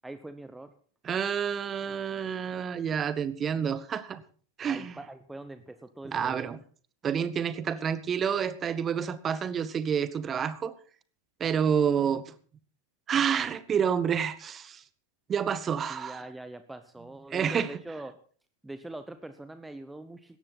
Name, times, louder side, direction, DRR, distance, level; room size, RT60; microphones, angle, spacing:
voice 1, 0.0-0.7 4.7-6.6 15.9-18.2 18.6-20.4, right 2 dB, 5° right, 1.0 m, -43 dB
voice 2, 1.0-4.2 4.6-5.0 6.0-6.6 7.0-10.7 11.4-12.3 13.1-14.8 15.3-16.2 17.3-17.7, right 7 dB, 25° right, 1.2 m, -29 dB
17.5 x 13.5 x 4.1 m
figure-of-eight pair, 90°, 0 cm